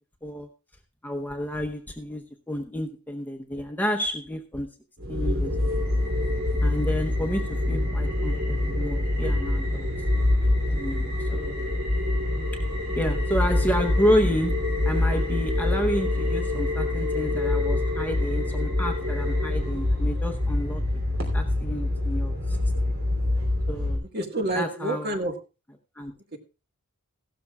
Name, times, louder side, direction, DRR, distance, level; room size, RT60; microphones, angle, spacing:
voice 1, 1.0-4.7 5.1-5.5 6.6-9.9 10.7-11.6 12.9-20.8 21.3-22.6 22.8-22.9 23.7-24.0 24.5-25.1 26.0-26.1, equal, 10° left, 3 dB, 0.8 m, -30 dB
sound 1, 5.0-24.0, left 1 dB, 65° right, 2.9 m, -25 dB
voice 2, 24.1-25.4 26.3-26.4, right 1 dB, 45° right, 5 dB, 1.5 m, -28 dB
16.0 x 12.5 x 2.3 m, 0.30 s
head